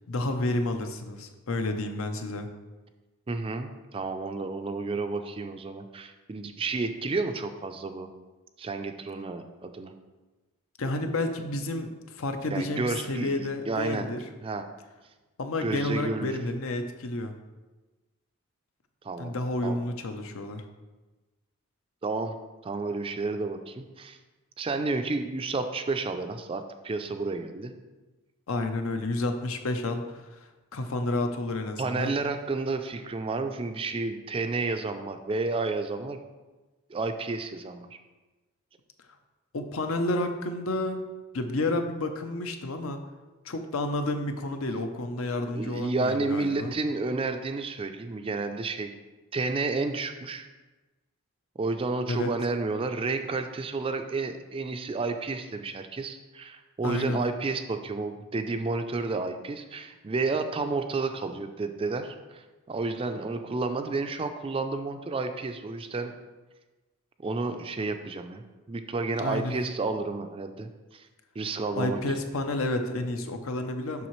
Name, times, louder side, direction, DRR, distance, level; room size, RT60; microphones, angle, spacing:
voice 1, 0.1-2.5 10.8-14.2 15.4-17.3 19.2-20.6 28.5-32.1 39.5-41.0 41.3-43.0 43.4-46.7 52.1-52.3 56.8-57.2 69.2-69.6 71.7-74.1, left 2 dB, 70° left, 7 dB, 0.6 m, -30 dB
voice 2, 3.3-8.1 8.6-9.9 12.5-14.1 14.4-14.7 15.6-16.4 19.0-19.4 19.6-19.8 22.0-22.4 22.6-24.2 24.6-27.7 31.8-36.2 36.9-37.9 45.5-48.9 49.3-50.5 51.6-66.1 67.2-71.1 71.4-72.0, right 3 dB, 25° right, 7 dB, 0.3 m, -31 dB
7.1 x 5.7 x 3.1 m, 1.2 s
head